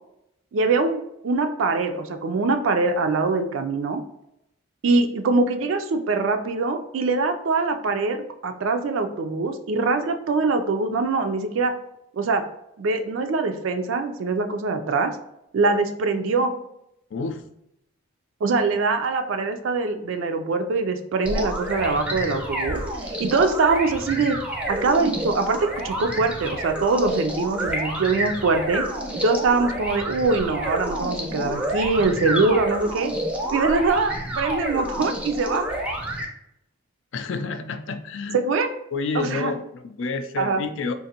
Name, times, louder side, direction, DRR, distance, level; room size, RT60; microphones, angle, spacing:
voice 1, 0.5-4.0 4.8-11.7 12.1-12.4 12.8-15.2 15.5-16.5 18.4-24.4 24.7-28.8 29.2-33.1 33.5-35.7 38.3-38.7 39.1-39.5 40.4-40.6, right 3 dB, 70° right, 6 dB, 0.4 m, -23 dB
voice 2, 17.1-17.4 37.1-38.4 38.9-40.9, left 4 dB, 60° left, 8 dB, 0.4 m, -29 dB
sound 1, 21.2-36.3, right 1 dB, 5° right, 0.4 m, -29 dB
3.7 x 2.5 x 2.8 m, 0.80 s
head